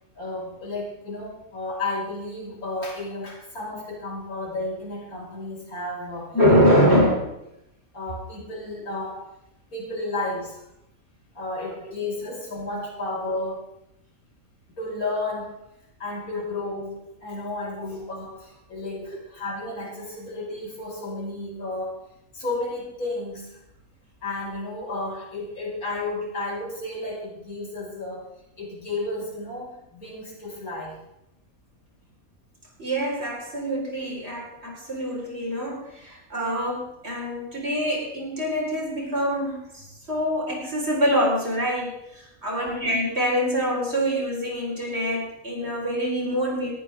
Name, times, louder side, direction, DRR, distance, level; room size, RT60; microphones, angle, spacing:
voice 1, 0.2-6.3 7.9-9.3 9.7-10.6 11.3-13.6 14.8-15.5 16.0-22.0 22.3-23.6 24.2-28.3 28.6-31.0 42.5-42.8, left 2 dB, 85° left, -3 dB, 6.0 m, -32 dB
voice 2, 6.3-7.3 10.0-10.1 19.0-19.2 32.8-46.7, equal, 45° right, -2 dB, 4.9 m, -24 dB
19.5 x 14.0 x 3.7 m, 0.82 s
omnidirectional pair, 1.5 m